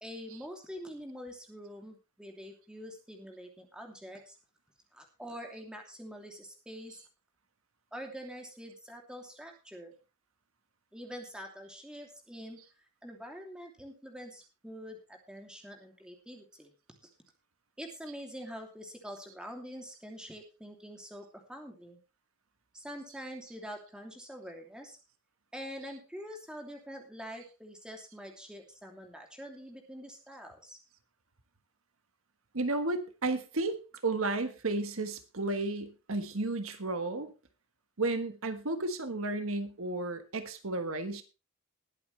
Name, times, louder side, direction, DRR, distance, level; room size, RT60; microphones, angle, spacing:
voice 1, 0.0-4.4 4.9-7.0 7.9-9.9 10.9-16.7 17.8-22.0 22.7-25.0 25.5-30.8, equal, 5° right, 2 dB, 2.8 m, -45 dB
voice 2, 32.5-37.3 38.0-41.2, right 2 dB, 75° right, 8 dB, 1.4 m, -33 dB
20.0 x 8.7 x 3.3 m, 0.31 s
head